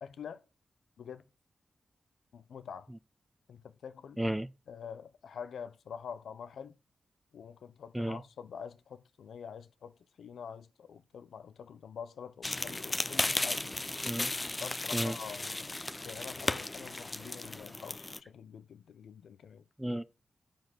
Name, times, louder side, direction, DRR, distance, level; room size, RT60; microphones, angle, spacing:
voice 1, 0.0-0.4 1.0-1.2 2.3-2.9 3.5-4.2 4.7-6.7 7.3-13.7 14.6-15.8 16.0-19.6, left 7 dB, 80° left, 0.7 m, -46 dB
voice 2, 4.2-4.5 7.9-8.2 14.1-14.3 14.9-15.1 19.8-20.0, right 1 dB, 10° right, 0.7 m, -32 dB
sound 1, 12.4-18.2, left 2 dB, 30° left, 0.7 m, -35 dB
10.5 x 5.0 x 6.1 m
supercardioid pair, 40°, 0 cm